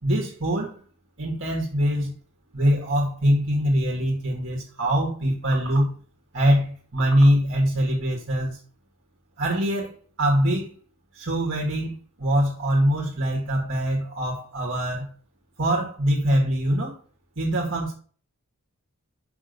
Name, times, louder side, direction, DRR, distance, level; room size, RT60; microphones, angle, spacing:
voice 1, 0.0-0.8 1.2-2.1 2.5-5.9 6.3-8.6 9.4-10.8 11.1-15.1 15.6-17.0 17.4-17.9, equal, 60° right, 2.3 m, -23 dB
6.2 x 6.2 x 6.9 m
head